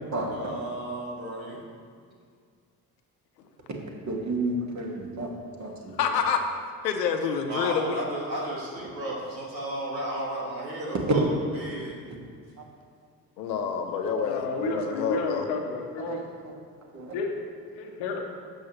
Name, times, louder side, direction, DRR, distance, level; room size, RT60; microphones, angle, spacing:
voice 1, 0.3-1.6 7.4-11.2 11.5-11.9, right 1 dB, 85° right, -4 dB, 1.5 m, -33 dB
voice 2, 4.1-5.3 5.6-6.1 12.6-12.7 16.0-16.5 16.8-17.1, right 2 dB, 35° right, 0 dB, 1.7 m, -32 dB
voice 3, 6.0-6.4 6.8-8.0 13.4-15.4, left 6 dB, 75° left, 5 dB, 0.8 m, -27 dB
voice 4, 14.2-16.2 17.1-17.3 17.7-18.2, left 4 dB, 60° left, 2 dB, 1.3 m, -31 dB
12.0 x 7.5 x 3.0 m, 2.1 s
figure-of-eight pair, 45°, 50 cm